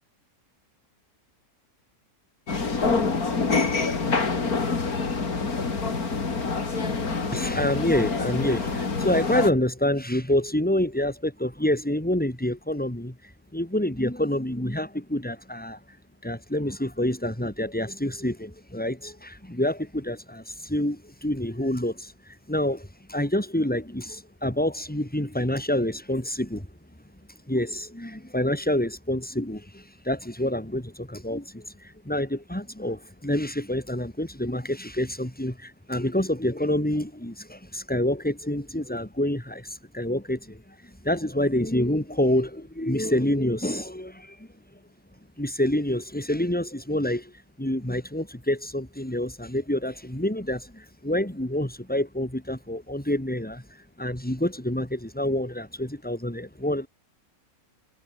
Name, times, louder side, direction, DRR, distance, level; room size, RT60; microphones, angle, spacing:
sound 1, 2.5-9.5, left 4 dB, 75° left, 3.4 m, -26 dB
voice 1, 7.3-13.2 13.5-15.8 16.2-22.1 22.5-26.7 27.5-31.7 32.1-40.7 41.0-44.5 45.4-47.3 47.6-53.6 54.0-56.9, left 1 dB, 5° left, 3.8 m, -27 dB
omnidirectional pair, 1.6 m